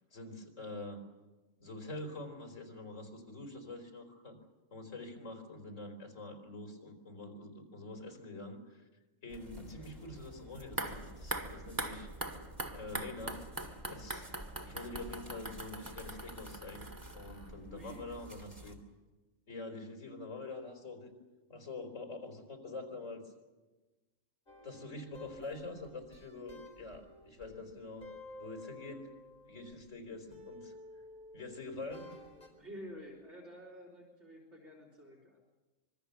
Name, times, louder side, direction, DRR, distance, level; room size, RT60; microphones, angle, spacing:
voice 1, 0.1-1.0 1.6-4.4 4.7-8.9 9.2-13.5 13.9-14.3 14.6-18.8 19.5-21.1 21.5-23.3 24.6-28.1 28.4-29.1 29.4-31.0 31.3-32.1, left 2 dB, 80° left, 4 dB, 4.4 m, -46 dB
sound 1, 9.3-18.8, equal, 35° right, 3.3 m, -53 dB
sound 2, 10.6-17.7 18.0-18.1, right 1 dB, 15° right, 1.7 m, -42 dB
voice 2, 17.6-18.3 32.6-35.4, equal, 65° right, -2 dB, 4.1 m, -50 dB
sound 3, 24.5-29.9 30.3-32.6, left 2 dB, 35° left, 4.6 m, -53 dB
25.5 x 22.5 x 7.0 m, 1.2 s
omnidirectional pair, 1.3 m